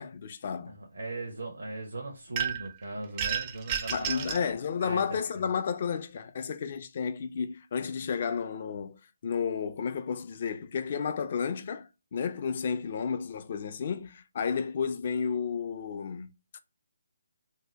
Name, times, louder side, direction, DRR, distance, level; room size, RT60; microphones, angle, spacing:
voice 1, 0.0-0.8 3.9-16.3 16.5-16.6, left 6 dB, 45° left, 0.3 m, -32 dB
voice 2, 0.7-4.4 4.8-5.4, right 2 dB, 75° right, 0.8 m, -39 dB
sound 1, 2.4-2.8 3.2-4.5, right 8 dB, 25° right, 0.4 m, -31 dB
2.7 x 2.1 x 3.3 m
figure-of-eight pair, 150°, 0 cm